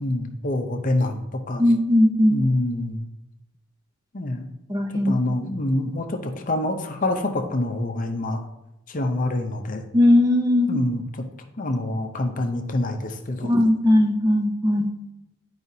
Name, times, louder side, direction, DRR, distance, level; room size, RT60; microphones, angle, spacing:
voice 1, 0.0-1.6 2.3-3.1 4.1-4.5 5.0-8.4 8.9-9.8 10.7-11.0 11.6-13.5, left 1 dB, 40° left, 4 dB, 0.6 m, -26 dB
voice 2, 1.6-2.4 4.7-5.2 9.9-10.8 13.4-14.9, left 1 dB, 15° right, 2 dB, 0.5 m, -18 dB
11.0 x 4.8 x 2.7 m, 0.94 s
head